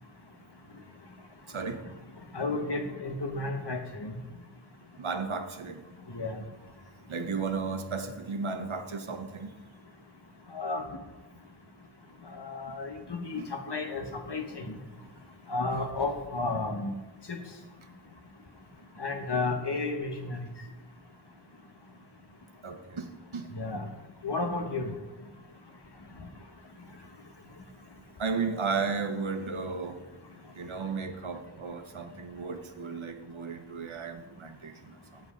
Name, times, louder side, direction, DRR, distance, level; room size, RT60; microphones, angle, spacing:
voice 1, 1.5-1.8 5.0-5.8 7.1-9.5 13.3-13.5 22.6-23.5 28.2-30.0 30.6-35.2, right 5 dB, 80° right, 8 dB, 0.9 m, -34 dB
voice 2, 2.3-4.1 6.1-6.4 10.5-10.8 12.3-14.7 15.5-16.9 17.3-17.4 19.0-20.4 23.5-23.9 24.2-24.9, left 3 dB, 55° left, 5 dB, 1.3 m, -32 dB
7.9 x 7.6 x 5.1 m, 1.1 s
wide cardioid pair, 40°, 47 cm